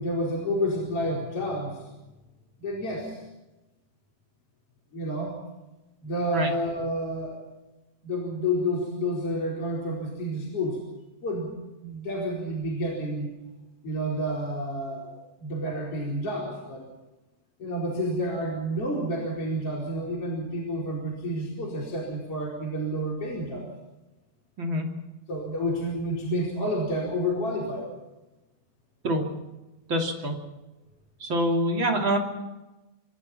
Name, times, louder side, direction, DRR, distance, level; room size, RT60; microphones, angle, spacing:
voice 1, 0.0-1.8 2.6-3.2 4.9-5.4 6.0-7.4 8.0-10.8 11.2-11.5 11.8-13.3 13.8-16.8 17.6-23.7 25.3-27.9, equal, 35° left, -2 dB, 5.0 m, -29 dB
voice 2, 29.9-30.3 31.2-32.2, equal, 30° right, 1 dB, 2.9 m, -25 dB
27.0 x 24.5 x 4.3 m, 1.1 s
omnidirectional pair, 5.1 m